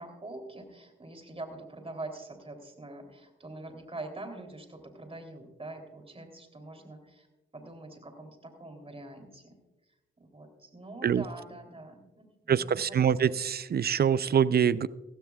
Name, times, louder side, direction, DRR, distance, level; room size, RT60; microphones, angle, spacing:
voice 1, 0.0-7.3 7.5-9.6 10.2-13.3, right 2 dB, 25° right, 5 dB, 3.2 m, -44 dB
voice 2, 12.5-14.9, right 8 dB, 50° right, 18 dB, 0.5 m, -25 dB
16.0 x 15.5 x 2.4 m, 1.1 s
supercardioid pair, 55°, 21 cm